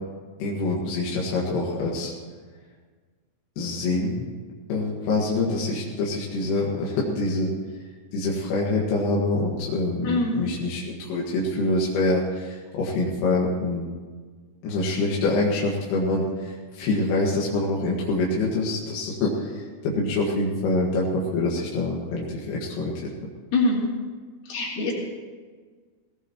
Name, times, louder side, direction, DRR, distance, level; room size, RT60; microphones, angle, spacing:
voice 1, 0.4-2.1 3.6-4.3 4.7-7.5 8.1-13.9 14.6-23.1, left 2 dB, 90° left, -4 dB, 4.4 m, -25 dB
voice 2, 10.0-10.5 23.5-23.9 24.5-24.9, left 2 dB, 70° left, -4 dB, 5.5 m, -23 dB
19.0 x 18.0 x 3.0 m, 1.5 s
omnidirectional pair, 5.7 m